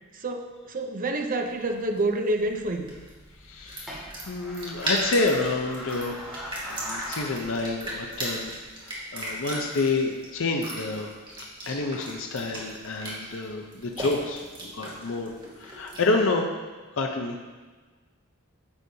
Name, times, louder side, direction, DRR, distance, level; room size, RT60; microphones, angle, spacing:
voice 1, 0.1-2.9, right 2 dB, 40° right, 4 dB, 0.7 m, -28 dB
sound 1, 1.4-16.2, right 1 dB, 25° right, 1.8 m, -37 dB
sound 2, 2.4-8.6, left 1 dB, ahead, 2.1 m, -42 dB
voice 2, 3.4-6.3 6.6-8.5 8.8-11.1 11.7-15.3 15.6-16.4 17.0-17.4, left 3 dB, 65° left, 2 dB, 0.7 m, -28 dB
9.8 x 6.9 x 2.8 m, 1.4 s
head